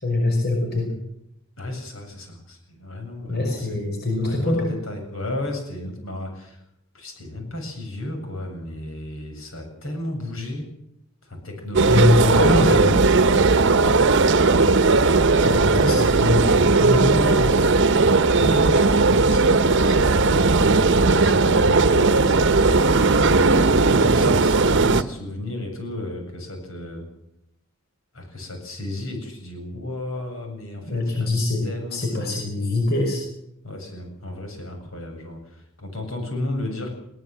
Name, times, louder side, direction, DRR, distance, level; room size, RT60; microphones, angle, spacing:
voice 1, 0.0-0.9 3.3-4.7 11.9-13.0 15.4-17.5 30.9-31.6 31.9-33.2, left 2 dB, 50° left, 1 dB, 5.5 m, -23 dB
voice 2, 1.6-3.8 4.2-6.6 6.9-10.7 11.3-14.2 18.3-23.3 23.7-27.0 28.1-31.3 31.6-32.2 33.6-36.9, left 1 dB, 75° left, 4 dB, 7.6 m, -33 dB
sound 1, 11.7-25.0, right 3 dB, 60° right, 0.9 m, -17 dB
21.5 x 18.0 x 7.7 m, 0.79 s
head